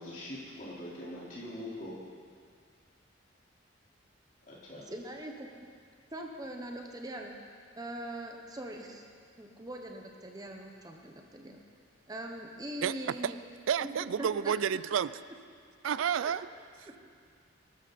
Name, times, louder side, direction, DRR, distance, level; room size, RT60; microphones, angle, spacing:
voice 1, 0.0-1.9 4.5-4.8, left 1 dB, 40° left, -8 dB, 4.2 m, -42 dB
voice 2, 4.9-5.7 6.1-7.4 7.8-9.0 9.4-11.6 12.1-13.4 13.8-14.5 16.2-16.4, right 1 dB, 20° right, 2 dB, 1.0 m, -42 dB
voice 3, 13.7-15.1 15.8-16.5, right 8 dB, 85° right, 17 dB, 0.4 m, -30 dB
18.5 x 13.0 x 4.2 m, 2.1 s
head